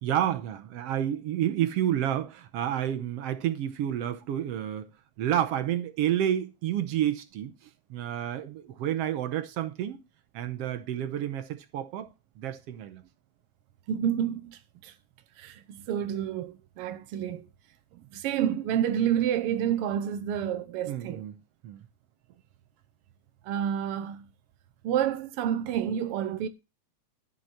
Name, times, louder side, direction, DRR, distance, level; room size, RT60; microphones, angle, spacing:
voice 1, 0.0-4.9 5.2-10.0 10.3-12.1 12.4-13.0 20.8-21.4 21.6-21.8, right 11 dB, 70° right, 1.6 m, -30 dB
voice 2, 13.9-14.9 15.4-17.5 18.1-21.2 23.5-24.2 24.8-26.5, right 9 dB, 90° right, 1.2 m, -29 dB
11.5 x 6.9 x 4.3 m
omnidirectional pair, 3.5 m